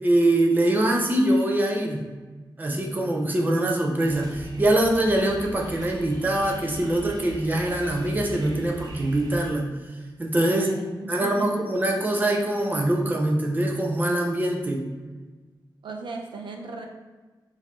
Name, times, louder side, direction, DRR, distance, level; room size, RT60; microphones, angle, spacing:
voice 1, 0.0-2.0 2.6-9.7 10.2-10.7 11.1-14.8, right 1 dB, 20° right, 0 dB, 0.7 m, -23 dB
sound 1, 4.0-9.5, equal, 55° right, 0.9 m, -41 dB
voice 2, 10.5-11.8 15.8-16.8, right 3 dB, 85° right, 2 dB, 0.7 m, -36 dB
6.2 x 2.8 x 3.0 m, 1.3 s
wide cardioid pair, 125°, 8 cm